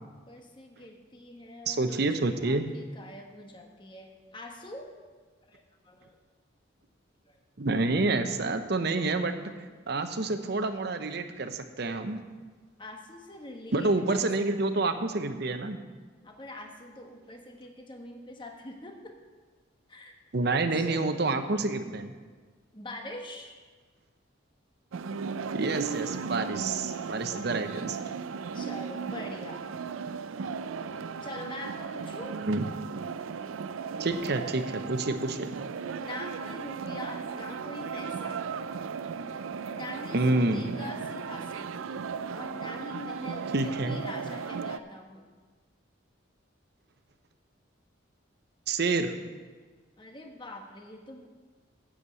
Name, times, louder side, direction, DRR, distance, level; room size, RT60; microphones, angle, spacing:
voice 1, 0.0-4.9 5.5-6.2 7.2-7.4 12.8-14.3 16.2-19.2 19.9-20.1 20.4-21.4 22.7-23.6 28.5-29.8 31.2-32.4 36.0-38.4 39.7-41.9 42.3-45.3 50.0-51.3, left 1 dB, 25° left, 3 dB, 1.1 m, -44 dB
voice 2, 1.7-2.7 7.6-9.4 9.9-12.2 13.7-15.8 20.3-22.1 25.5-28.0 32.5-32.7 34.0-35.5 40.1-40.7 43.5-44.0 48.7-49.1, right 3 dB, 55° right, 8 dB, 0.8 m, -28 dB
sound 1, 24.9-44.8, right 5 dB, 90° right, 0.4 m, -36 dB
8.2 x 7.3 x 8.2 m, 1.4 s
head